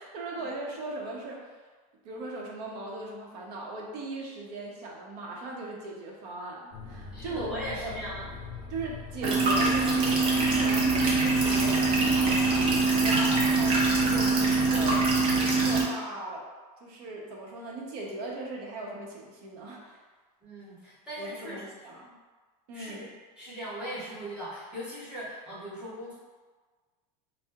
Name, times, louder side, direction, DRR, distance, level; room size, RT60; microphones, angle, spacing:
voice 1, 0.0-1.5 2.0-8.0 8.7-15.0 15.3-16.5 16.8-20.0 21.2-22.1 22.7-23.1, right 2 dB, 70° right, -2 dB, 0.7 m, -39 dB
sound 1, 6.7-15.2, left 6 dB, 55° left, 0.6 m, -42 dB
voice 2, 7.1-8.3 12.0-12.1 20.4-21.6 22.7-23.1 23.4-26.1, equal, 5° right, -11 dB, 0.9 m, -39 dB
sound 2, 9.2-15.8, right 3 dB, 25° right, 0.5 m, -23 dB
2.8 x 2.0 x 3.4 m, 1.4 s
supercardioid pair, 165°, 21 cm